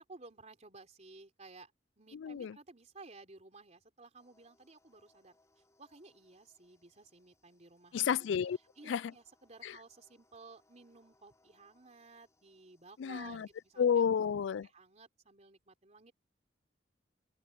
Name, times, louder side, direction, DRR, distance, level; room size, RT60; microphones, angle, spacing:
voice 1, 0.0-1.7 2.0-5.4 5.8-8.1 8.8-14.0 14.6-16.1, right 3 dB, 40° right, 3.5 m, -55 dB
voice 2, 2.1-2.6 7.9-8.6 8.9-9.0 9.6-9.7 13.0-13.5 13.8-14.7, left 7 dB, 70° left, 0.3 m, -31 dB
sound 1, 4.2-13.8, left 2 dB, 15° left, 3.9 m, -73 dB
open air
head